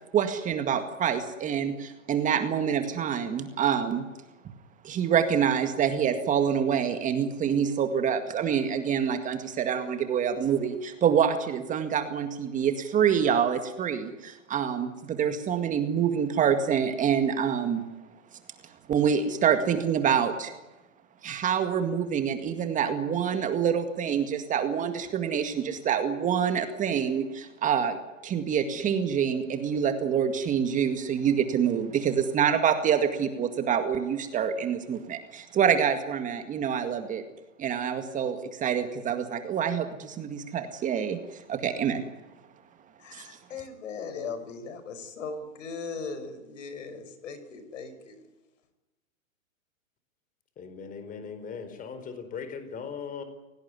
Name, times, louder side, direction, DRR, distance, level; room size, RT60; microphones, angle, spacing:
voice 1, 0.1-4.1 4.8-17.8 18.9-20.5 21.2-28.0 28.2-37.2 37.6-42.0 43.1-43.4, right 8 dB, 20° right, 8 dB, 2.0 m, -26 dB
voice 2, 43.0-48.1, left 4 dB, 65° left, 11 dB, 5.8 m, -38 dB
voice 3, 50.6-53.2, left 6 dB, 20° left, 9 dB, 4.3 m, -39 dB
27.0 x 18.0 x 9.8 m, 1.1 s
hypercardioid pair, 135°, 40 cm